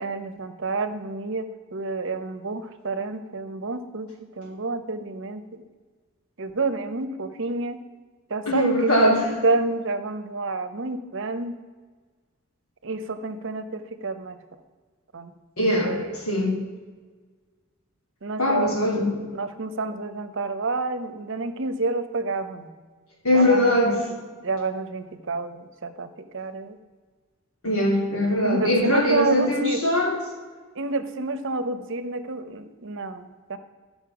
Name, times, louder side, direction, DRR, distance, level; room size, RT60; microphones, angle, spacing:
voice 1, 0.0-4.1 4.4-5.6 6.4-7.8 8.3-9.1 9.4-11.6 12.8-14.4 15.1-15.3 15.8-16.5 18.2-22.7 23.3-24.0 24.4-26.8 28.4-29.8 30.8-33.6, right 3 dB, 60° right, 10 dB, 0.8 m, -29 dB
voice 2, 8.5-9.3 15.6-16.6 18.4-19.2 23.2-24.0 27.6-30.2, left 1 dB, 85° left, -2 dB, 3.1 m, -21 dB
13.0 x 5.4 x 6.0 m, 1.4 s
head